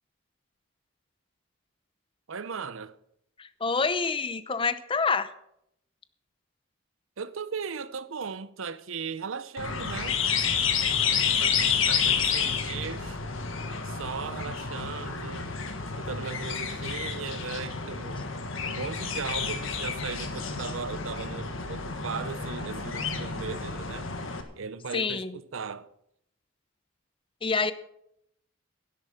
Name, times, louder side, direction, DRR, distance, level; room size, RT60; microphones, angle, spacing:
voice 1, 2.3-2.9 7.2-10.2 10.8-13.2 13.8-15.5 16.0-18.2 18.6-24.1 24.6-25.9, right 5 dB, 70° right, 0.7 m, -37 dB
voice 2, 3.4-5.3 24.9-25.4 27.4-27.7, left 4 dB, 25° left, 0.6 m, -27 dB
sound 1, 9.6-24.4, left 6 dB, 70° left, 1.6 m, -30 dB
12.5 x 11.0 x 5.8 m
head